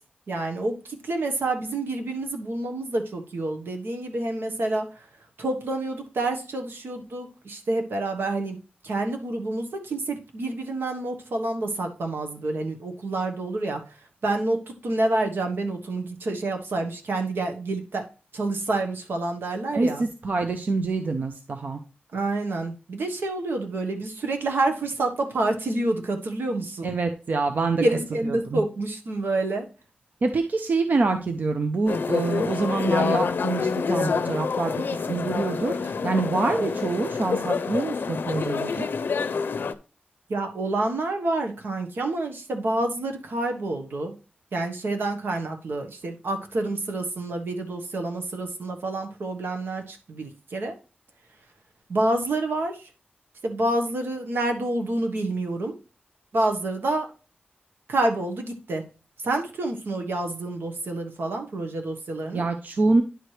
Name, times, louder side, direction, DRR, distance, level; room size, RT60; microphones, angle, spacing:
voice 1, 0.3-5.0 5.4-8.6 8.8-13.8 14.2-18.0 18.3-20.0 22.1-26.9 27.8-29.7 36.6-36.7 40.3-44.1 44.5-50.7 51.9-52.8 53.4-55.8 56.3-57.1 57.9-58.8 59.2-62.4, right 2 dB, 80° right, 4 dB, 1.3 m, -28 dB
voice 2, 19.7-21.8 26.8-27.8 28.2-28.6 30.2-38.9 62.3-63.0, right 3 dB, 55° right, 6 dB, 0.6 m, -26 dB
sound 1, 31.9-39.7, left 5 dB, 70° left, 0.5 m, -27 dB
10.0 x 4.6 x 3.2 m, 0.35 s
wide cardioid pair, 145°, 4 cm